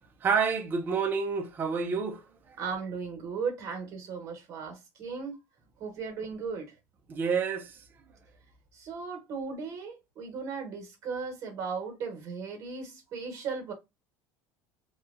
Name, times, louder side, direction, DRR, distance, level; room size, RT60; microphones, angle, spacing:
voice 1, 0.2-2.3 7.1-7.8, right 5 dB, 25° right, 0.5 m, -28 dB
voice 2, 2.6-5.4 5.8-6.8 8.7-13.7, right 5 dB, 40° right, 1.1 m, -36 dB
2.8 x 2.2 x 2.4 m
cardioid pair, 155°, 8 cm